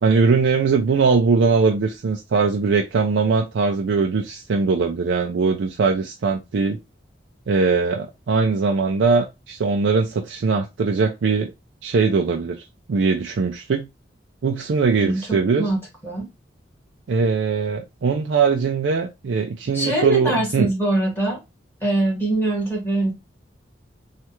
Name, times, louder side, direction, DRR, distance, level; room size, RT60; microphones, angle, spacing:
voice 1, 0.0-6.8 7.5-11.5 11.8-12.6 12.9-13.9 14.4-15.7 17.1-20.7, right 4 dB, 90° right, 0.4 m, -20 dB
voice 2, 19.7-21.4 21.8-23.1, right 1 dB, 10° left, 1.4 m, -22 dB
3.3 x 2.4 x 2.9 m
head